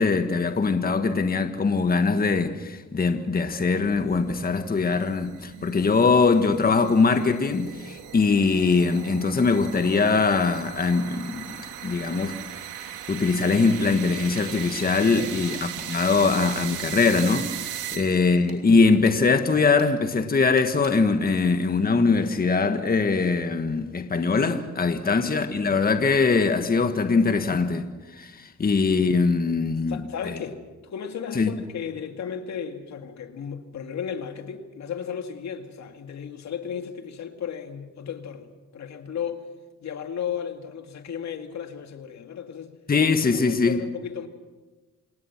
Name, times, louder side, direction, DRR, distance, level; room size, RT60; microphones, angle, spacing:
voice 1, 0.0-11.5 11.8-12.3 12.8-27.8 28.1-30.0 31.3-31.5 42.9-43.8, left 4 dB, 30° left, 1.6 m, -22 dB
sound 1, 3.6-18.4, right 10 dB, 90° right, 1.9 m, -38 dB
sound 2, 13.6-14.0 14.4-14.5 15.5-15.9 16.5-17.6 18.5-19.2 19.8-19.9 20.6-21.0, right 4 dB, 30° right, 4.1 m, -47 dB
voice 2, 15.1-15.6 17.9-18.2 24.9-25.3 29.9-39.5 39.8-42.8 43.3-44.3, left 7 dB, 65° left, 2.2 m, -35 dB
28.5 x 19.5 x 6.0 m
cardioid pair, 90°, 30 cm